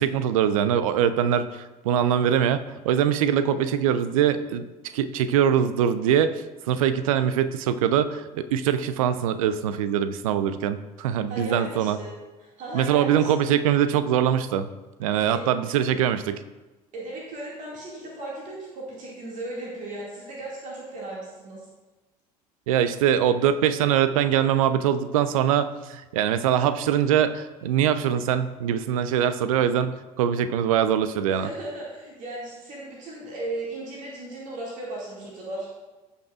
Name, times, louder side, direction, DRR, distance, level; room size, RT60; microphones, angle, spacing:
voice 1, 0.0-1.5 1.8-4.7 4.9-6.3 6.7-8.2 8.5-12.0 12.7-14.7 15.0-16.4 22.7-31.5, right 9 dB, 65° right, 13 dB, 0.5 m, -23 dB
voice 2, 11.3-12.1 12.4-13.3 15.1-15.4 16.9-21.6 31.3-35.7, right 2 dB, 40° right, -4 dB, 2.2 m, -36 dB
16.0 x 5.6 x 2.5 m, 1.1 s
figure-of-eight pair, 65°, 19 cm